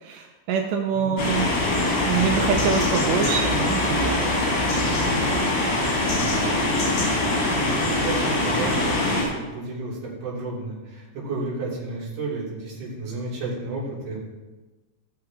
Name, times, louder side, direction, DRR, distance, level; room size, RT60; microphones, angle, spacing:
voice 1, 0.0-1.5 2.1-4.2, right 7 dB, 80° right, 3 dB, 2.9 m, -25 dB
sound 1, 1.2-9.2, left 2 dB, 75° left, 4.6 m, -23 dB
voice 2, 6.1-7.1 7.4-14.3, right 3 dB, 40° right, -7 dB, 3.9 m, -32 dB
16.0 x 6.5 x 3.6 m, 1.2 s
omnidirectional pair, 5.1 m